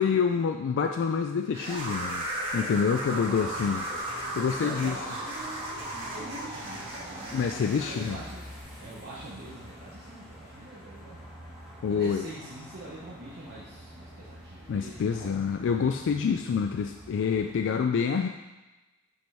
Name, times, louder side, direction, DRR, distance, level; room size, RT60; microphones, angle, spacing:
voice 1, 0.0-2.3 2.5-3.9 4.4-5.0 7.3-8.2 11.8-12.3 14.7-18.3, left 6 dB, 60° left, 5 dB, 0.3 m, -27 dB
sound 1, 1.5-8.2, right 1 dB, 25° right, 1.8 m, -35 dB
voice 2, 3.1-3.7 4.3-8.5 8.8-11.3 11.9-15.3 17.6-18.0, right 1 dB, 50° right, -7 dB, 1.0 m, -44 dB
sound 2, 3.3-17.5, equal, 5° right, 1.8 m, -47 dB
6.1 x 5.4 x 3.4 m, 1.1 s
head